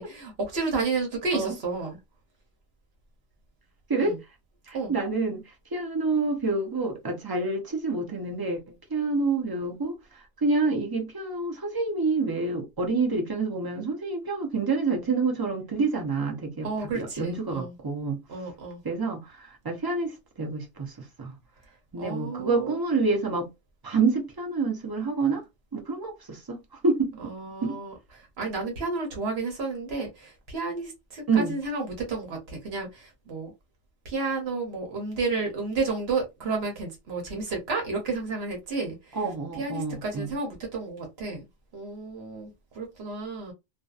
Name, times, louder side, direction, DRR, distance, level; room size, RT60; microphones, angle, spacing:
voice 1, 0.0-2.0 4.0-4.1 4.7-4.9 16.6-17.7 18.3-18.8 22.0-22.8 27.2-27.9 28.4-33.5 34.0-39.2 39.6-41.5 41.7-43.5, right 3 dB, 75° right, 1.0 m, -31 dB
voice 2, 4.7-18.2 18.8-21.4 21.9-23.5 23.8-25.4 25.7-27.1 27.6-27.8 31.3-31.5 39.1-40.3, right 3 dB, 35° right, 0.4 m, -28 dB
2.6 x 2.1 x 2.3 m
omnidirectional pair, 1.1 m